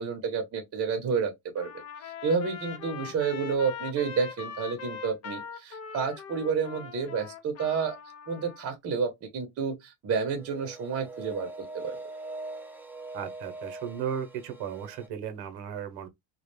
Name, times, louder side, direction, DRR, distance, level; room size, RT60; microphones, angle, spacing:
voice 1, 0.0-1.7 2.2-8.0 8.3-11.5 11.7-12.0, right 5 dB, 35° right, 0.8 m, -30 dB
Trumpet, 1.6-8.7, left 7 dB, 40° left, 0.6 m, -41 dB
sound 1, 10.3-15.1, right 2 dB, 5° right, 0.4 m, -42 dB
voice 2, 13.1-16.1, right 8 dB, 70° right, 0.9 m, -35 dB
2.3 x 2.1 x 3.0 m
cardioid pair, 120°, 39 cm